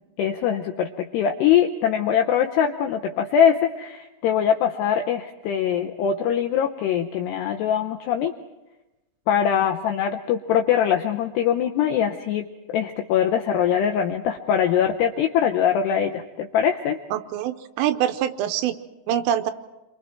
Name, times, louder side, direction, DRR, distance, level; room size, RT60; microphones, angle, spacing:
voice 1, 0.2-8.3 9.3-17.0, left 8 dB, 85° left, 4 dB, 2.4 m, -22 dB
voice 2, 17.1-18.7 19.1-19.5, right 10 dB, 80° right, 9 dB, 3.4 m, -24 dB
28.0 x 24.0 x 4.5 m, 1.0 s
omnidirectional pair, 5.8 m